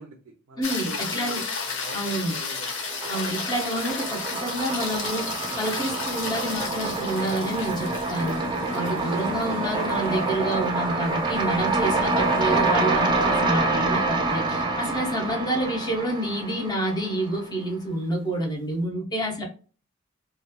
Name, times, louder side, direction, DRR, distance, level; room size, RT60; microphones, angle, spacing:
voice 1, 0.0-2.7 9.8-10.2 19.4-19.5, right 3 dB, 80° right, 0.4 m, -43 dB
sound 1, 0.6-13.0 17.5-17.6, left 4 dB, 65° left, 0.7 m, -34 dB
voice 2, 0.6-1.5 1.9-2.3 3.1-8.4 8.7-19.4, right 1 dB, 20° left, 0.6 m, -28 dB
sound 2, 1.1-1.9 2.2-17.4, right 2 dB, 20° right, 0.4 m, -27 dB
2.9 x 2.1 x 2.2 m
head